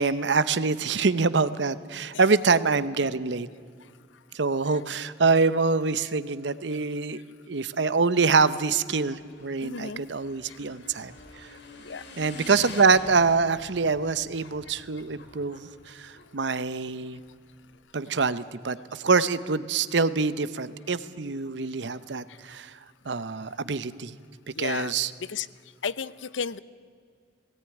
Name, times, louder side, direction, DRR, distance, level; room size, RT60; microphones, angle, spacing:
voice 1, 0.0-3.5 4.3-7.2 7.5-11.1 11.4-11.5 12.2-17.2 17.9-22.8 23.1-24.1 24.6-25.1, right 4 dB, 70° right, 15 dB, 0.8 m, -25 dB
Motorcycle / Engine, 8.6-17.8, left 2 dB, 65° left, 2.8 m, -47 dB
voice 2, 9.6-10.0 10.5-10.6 11.8-12.1 22.3-22.4 24.5-25.5 25.8-26.6, left 6 dB, 85° left, 17 dB, 0.6 m, -33 dB
19.0 x 17.5 x 9.9 m, 2.2 s
head